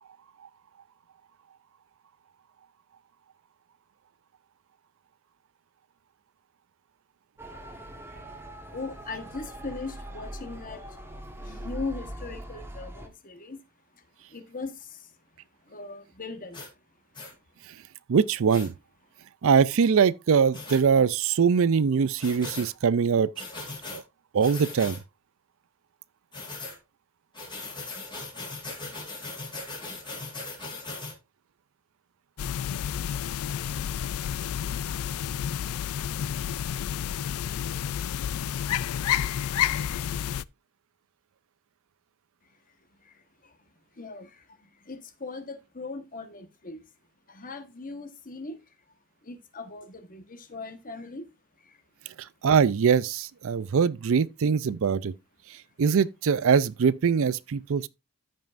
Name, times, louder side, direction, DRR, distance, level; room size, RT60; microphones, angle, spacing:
Motor vehicle (road) / Siren, 7.4-13.1, right 1 dB, 10° right, 1.3 m, -41 dB
voice 1, 8.7-10.8 11.4-13.6 13.9-14.0 14.3-15.1 15.7-16.6 43.0-43.6 43.9-46.8 47.3-48.6 49.2-51.3 51.6-51.8, left 3 dB, 40° left, 1.2 m, -39 dB
sound 1, 16.5-16.7 17.1-17.3 18.5-18.7 20.5-20.8 22.2-22.7 23.4-24.0 24.4-25.0 26.3-26.8 27.3-31.1, left 3 dB, 20° left, 3.1 m, -39 dB
voice 2, 18.1-18.7 19.4-23.4 23.9-24.0 24.3-25.0 52.4-55.1 55.8-57.9, right 6 dB, 60° right, 0.4 m, -22 dB
sound 2, 32.4-40.4, left 9 dB, 70° left, 0.3 m, -30 dB
14.0 x 5.5 x 2.5 m
head